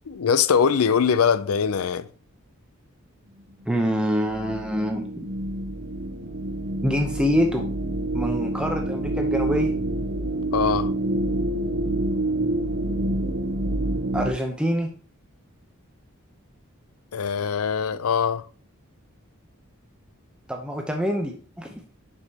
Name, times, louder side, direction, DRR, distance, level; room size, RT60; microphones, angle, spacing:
voice 1, 0.1-2.1 10.5-10.9 17.1-18.4, left 6 dB, 80° left, 0.5 m, -22 dB
voice 2, 3.7-5.0 6.8-7.7 8.1-9.7 14.1-14.9 20.5-21.8, equal, 5° right, 0.7 m, -25 dB
sound 1, 4.3-14.3, right 1 dB, 85° right, 0.9 m, -27 dB
7.7 x 6.4 x 2.9 m
head